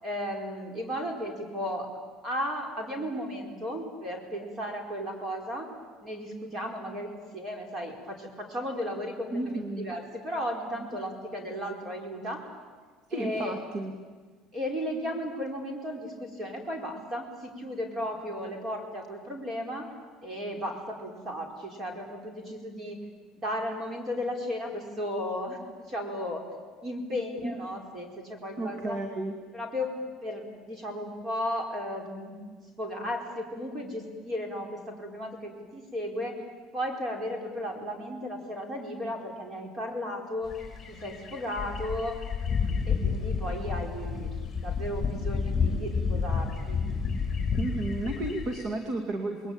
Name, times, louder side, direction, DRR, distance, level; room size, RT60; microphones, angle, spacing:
voice 1, 0.0-1.9 2.2-5.7 6.0-12.4 13.1-13.6 14.5-19.9 20.2-23.0 23.4-26.4 26.8-29.0 29.5-32.4 32.8-36.4 36.7-40.5 40.9-42.2 42.9-44.3 44.6-46.8, equal, 30° right, 3 dB, 4.6 m, -35 dB
voice 2, 9.3-9.9 13.1-13.9 27.3-27.5 28.6-29.3 47.6-49.5, right 2 dB, 45° right, 5 dB, 2.4 m, -32 dB
sound 1, 40.5-48.6, left 5 dB, 15° left, 4.9 m, -30 dB
28.5 x 21.0 x 8.9 m, 1.5 s
cardioid pair, 150°, 0 cm